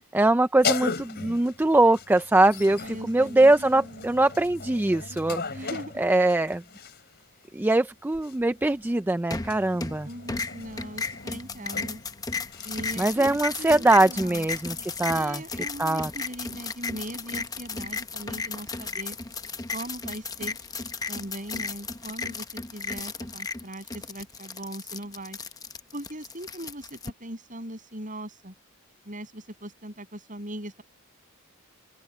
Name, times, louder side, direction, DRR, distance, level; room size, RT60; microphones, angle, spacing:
voice 1, 0.1-5.7 6.0-6.6 7.5-10.1 13.0-15.4 15.8-16.1, right 2 dB, 10° right, 0.3 m, -22 dB
sound 1, 0.6-7.2 8.1-15.0, left 4 dB, 45° left, 4.3 m, -38 dB
voice 2, 2.8-4.1 5.5-6.0 10.0-12.0 12.6-14.5 15.1-19.2 19.7-20.6 21.1-25.4 25.9-28.5 29.0-30.8, right 1 dB, 35° right, 7.3 m, -40 dB
sound 2, 9.3-10.0 10.3-27.1, left 4 dB, 15° left, 0.8 m, -35 dB
open air
head